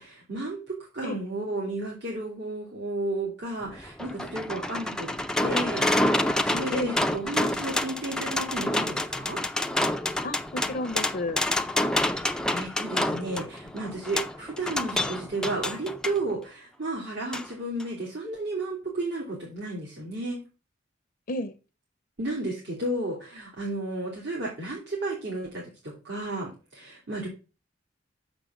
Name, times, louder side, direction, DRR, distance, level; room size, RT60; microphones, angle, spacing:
voice 1, 0.0-5.1 5.4-9.4 11.9-20.4 22.2-27.3, right 2 dB, 65° right, 2.8 m, -33 dB
sound 1, 3.6-16.2 17.3-17.5 17.8-17.9, left 1 dB, 5° left, 0.5 m, -28 dB
voice 2, 10.2-11.4 21.3-21.5, left 2 dB, 50° left, 0.7 m, -32 dB
6.6 x 5.1 x 7.1 m
head